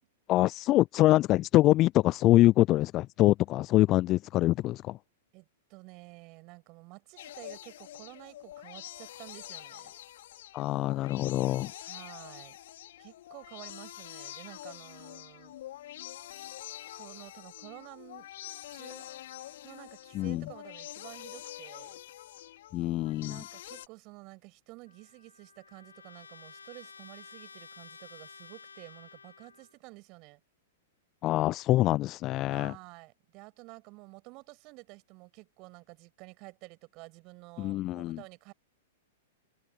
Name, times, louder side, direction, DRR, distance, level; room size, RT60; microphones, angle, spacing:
voice 1, 0.3-5.0 10.5-11.7 20.2-20.4 22.7-23.4 31.2-32.7 37.6-38.2, left 16 dB, 35° left, 0.3 m, -24 dB
voice 2, 5.3-9.9 11.8-12.6 13.0-15.5 16.9-18.3 18.7-19.2 19.6-22.0 23.2-30.4 32.4-38.5, right 26 dB, 40° right, 6.0 m, -51 dB
sound 1, 7.2-23.9, left 13 dB, 55° left, 4.3 m, -46 dB
Trumpet, 24.9-29.7, left 5 dB, 75° left, 3.0 m, -52 dB
figure-of-eight pair, 105°, 0 cm